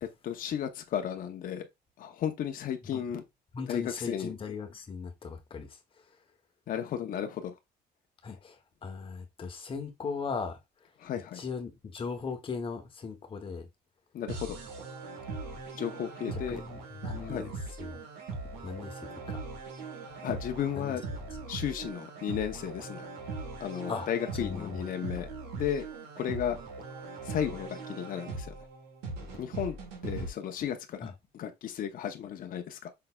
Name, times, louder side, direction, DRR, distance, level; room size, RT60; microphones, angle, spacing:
voice 1, 0.2-1.7 2.0-3.2 3.7-4.3 6.7-7.5 11.0-11.4 14.1-14.6 15.7-16.6 17.2-17.5 20.2-21.0 21.5-23.1 23.6-25.3 25.6-25.9 26.2-26.6 27.2-28.5 29.4-29.8 30.0-32.9, left 9 dB, 55° left, 0.7 m, -34 dB
voice 2, 3.5-5.7 8.2-8.6 8.8-10.6 11.4-13.7 16.5-17.5 17.8-17.9 18.6-19.4 20.8-21.0 23.9-24.1 24.3-24.8, left 5 dB, 30° left, 1.0 m, -38 dB
sound 1, 14.3-30.3, right 3 dB, 90° right, 1.6 m, -40 dB
5.6 x 3.9 x 2.3 m
cardioid pair, 110°, 17 cm